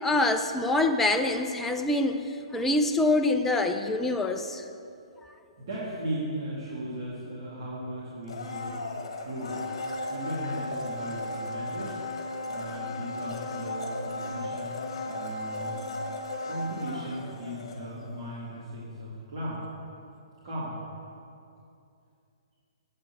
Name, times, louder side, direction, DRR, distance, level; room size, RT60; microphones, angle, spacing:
voice 1, 0.0-2.2 2.5-4.6, left 2 dB, 10° left, 6 dB, 0.5 m, -25 dB
voice 2, 5.6-8.8 9.2-9.6 10.1-12.0 12.5-14.7 15.0-15.9 16.5-19.6 20.4-20.8, right 1 dB, 45° right, -9 dB, 2.5 m, -37 dB
Domestic sounds home sounds, 8.2-18.2 18.5-18.6, left 2 dB, 55° left, 1.7 m, -35 dB
8.7 x 6.8 x 7.8 m, 2.5 s
figure-of-eight pair, 125°, 3 cm